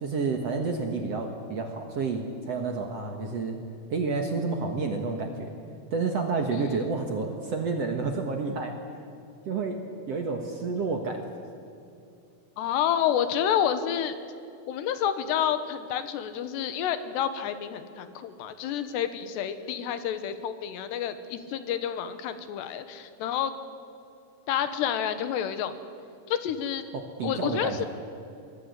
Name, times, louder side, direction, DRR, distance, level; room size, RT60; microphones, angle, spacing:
voice 1, 0.0-3.6 3.9-5.5 5.9-8.7 9.5-11.2 26.9-27.8, right 4 dB, 55° right, 3 dB, 1.9 m, -30 dB
voice 2, 12.6-14.2 14.7-23.5 24.5-25.8 26.3-26.8 27.2-27.9, left 9 dB, 85° left, 10 dB, 3.4 m, -29 dB
25.0 x 20.0 x 8.2 m, 2.6 s
omnidirectional pair, 4.8 m